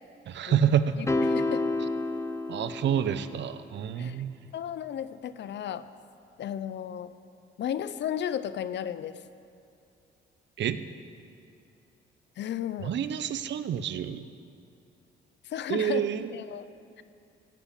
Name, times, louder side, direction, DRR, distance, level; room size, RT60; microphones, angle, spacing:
voice 1, 0.3-1.1 2.5-4.4 10.6-10.8 12.8-14.3 15.7-16.3, right 9 dB, 65° right, 12 dB, 0.8 m, -28 dB
voice 2, 1.0-1.6 4.0-4.2 4.5-5.9 6.4-7.1 7.6-9.2 12.4-12.9 15.4-16.6, left 9 dB, 65° left, 14 dB, 0.7 m, -34 dB
sound 1, 1.1-3.5, left 2 dB, 15° left, 0.8 m, -29 dB
16.0 x 8.7 x 8.3 m, 2.5 s
cardioid pair, 90°, 20 cm